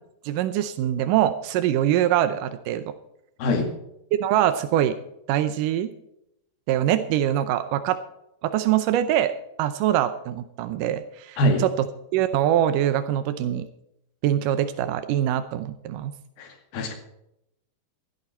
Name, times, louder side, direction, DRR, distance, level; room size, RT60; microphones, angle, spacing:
voice 1, 0.3-2.8 4.2-5.0 5.3-5.9 6.7-8.0 8.4-9.3 9.6-11.4 12.1-13.6 14.2-16.1, right 11 dB, 80° right, 10 dB, 1.9 m, -23 dB
voice 2, 3.4-3.7 11.4-11.7 16.4-16.9, left 1 dB, 70° left, 4 dB, 3.9 m, -23 dB
16.0 x 11.0 x 4.3 m, 0.81 s
omnidirectional pair, 4.6 m